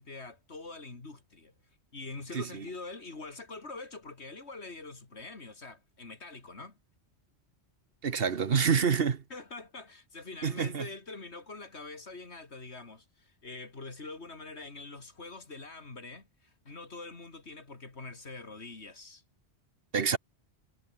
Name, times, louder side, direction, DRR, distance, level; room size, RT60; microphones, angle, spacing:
voice 1, 0.0-1.5 1.9-6.8 9.3-19.2, left 3 dB, 75° left, 3.3 m, -44 dB
voice 2, 8.0-9.2 10.4-10.9 19.9-20.2, right 6 dB, 60° right, 1.3 m, -27 dB
omnidirectional pair, 1.1 m